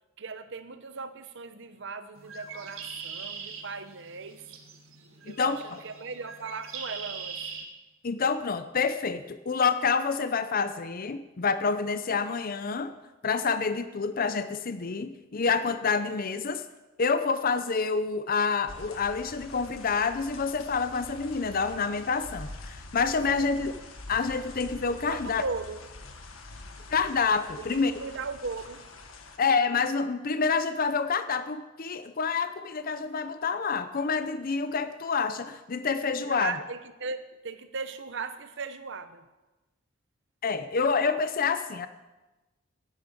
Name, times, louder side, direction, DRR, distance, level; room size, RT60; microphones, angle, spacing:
voice 1, 0.2-4.4 5.3-7.4 23.3-23.5 25.1-25.8 27.6-28.9 36.2-39.2, right 4 dB, 60° right, 11 dB, 1.0 m, -38 dB
Bird, 2.2-7.6, right 5 dB, 80° right, 1.8 m, -41 dB
voice 2, 5.2-5.8 8.0-12.9 13.2-16.6 17.0-23.7 24.1-25.4 26.9-27.9 29.4-36.5 40.4-41.9, left 5 dB, 45° left, 11 dB, 0.6 m, -28 dB
sound 1, 18.7-29.4, left 2 dB, 90° left, 1.6 m, -45 dB
11.0 x 9.6 x 8.3 m, 1.1 s
head